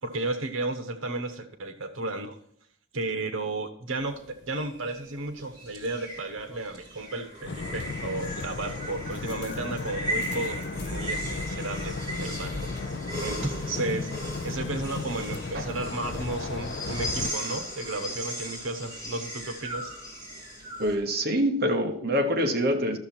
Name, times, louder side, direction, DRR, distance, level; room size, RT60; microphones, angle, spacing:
voice 1, 0.0-2.4 2.9-12.7 13.2-14.1 14.4-19.9, right 2 dB, 85° right, 1.1 m, -33 dB
sound 1, 4.0-20.9, equal, 20° right, 2.5 m, -37 dB
sound 2, 7.4-17.3, left 4 dB, 55° left, 0.4 m, -35 dB
voice 2, 20.8-23.0, equal, 50° right, 1.0 m, -25 dB
12.0 x 6.8 x 4.4 m
head